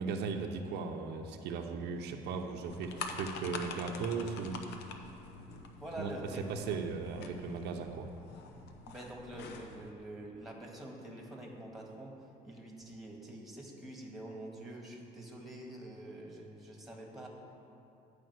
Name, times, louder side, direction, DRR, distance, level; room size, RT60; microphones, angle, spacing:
voice 1, 0.0-4.7 6.0-6.1 6.4-8.1, right 5 dB, 80° right, 3 dB, 0.8 m, -37 dB
sound 1, 2.6-9.9, left 4 dB, 80° left, 0.8 m, -46 dB
voice 2, 5.8-6.4 8.8-12.1 12.4-17.3, right 1 dB, ahead, -1 dB, 1.8 m, -46 dB
10.5 x 5.0 x 8.0 m, 2.8 s
cardioid pair, 110°, 17 cm